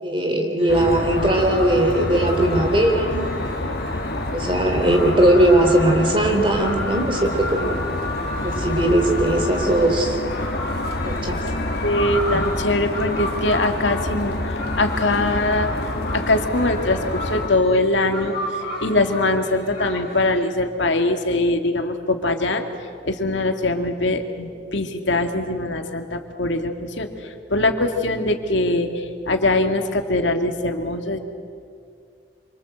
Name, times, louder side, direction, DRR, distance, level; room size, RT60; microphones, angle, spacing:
voice 1, 0.0-3.2 3.6-3.8 4.3-7.8 8.4-10.2 11.0-11.4 12.3-12.4, right 1 dB, 30° right, 3 dB, 3.6 m, -19 dB
sound 1, 0.6-20.4, left 1 dB, 30° left, 6.7 m, -34 dB
sound 2, 0.7-17.5, left 1 dB, 55° left, 1.9 m, -27 dB
voice 2, 11.8-15.7 16.1-18.4 18.8-22.7 23.0-27.1 27.5-31.2, left 2 dB, 80° left, 5 dB, 2.1 m, -22 dB
26.5 x 25.0 x 7.9 m, 2.3 s
head